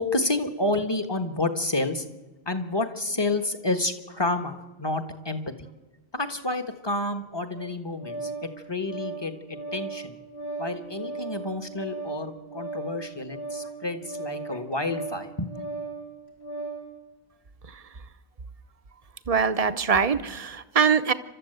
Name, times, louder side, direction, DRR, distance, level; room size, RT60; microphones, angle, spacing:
voice 1, 0.0-2.0 2.4-5.7 6.1-10.2 10.6-15.6, left 2 dB, 25° left, 7 dB, 1.5 m, -29 dB
Organ, 7.5-16.9, right 3 dB, 80° left, 4.7 m, -37 dB
voice 2, 19.3-21.1, right 6 dB, 40° right, 12 dB, 0.9 m, -23 dB
29.0 x 13.0 x 8.0 m, 1.2 s
omnidirectional pair, 1.1 m